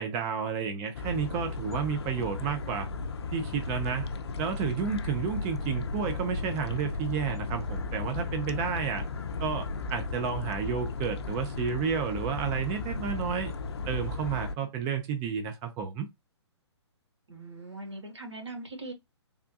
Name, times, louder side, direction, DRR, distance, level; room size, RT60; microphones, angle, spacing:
voice 1, 0.0-2.9 3.3-4.1 4.4-9.1 9.4-13.5 13.9-16.1, right 6 dB, 20° right, 0.5 m, -31 dB
sound 1, 0.9-14.5, left 3 dB, 65° left, 0.5 m, -35 dB
voice 2, 17.3-18.9, right 2 dB, 75° right, 1.3 m, -41 dB
3.5 x 2.2 x 2.6 m
figure-of-eight pair, 125°, 15 cm